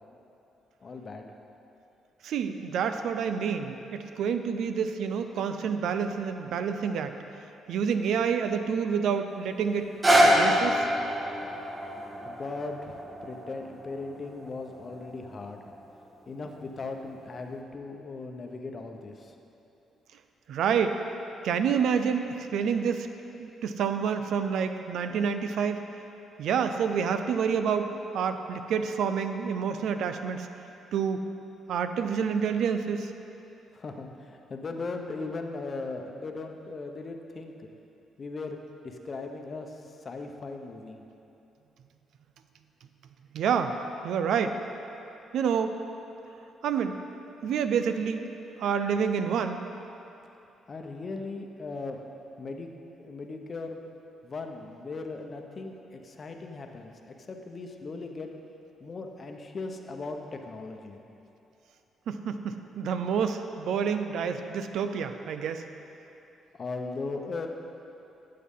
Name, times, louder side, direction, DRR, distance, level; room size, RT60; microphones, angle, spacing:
voice 1, 0.8-1.3 12.2-13.0 13.2-15.7 16.3-19.3 33.7-37.7 38.2-38.6 38.8-39.7 40.0-41.0 50.7-52.0 52.4-52.7 53.0-53.8 54.2-58.3 58.8-61.0 66.5-67.5, left 3 dB, 40° left, 4 dB, 0.9 m, -38 dB
voice 2, 2.2-7.2 7.7-9.9 10.2-10.9 20.5-21.0 21.4-23.1 23.4-25.8 26.4-30.5 30.9-31.2 31.7-33.1 43.3-43.7 44.0-44.6 45.3-45.8 46.6-46.9 47.4-48.3 48.6-49.6 62.1-65.7, right 6 dB, 75° right, 8 dB, 0.5 m, -28 dB
sound 1, 9.8-15.9 16.5-16.6, equal, 25° right, 1.4 m, -26 dB
12.5 x 7.6 x 3.7 m, 2.9 s
cardioid pair, 90°, 0 cm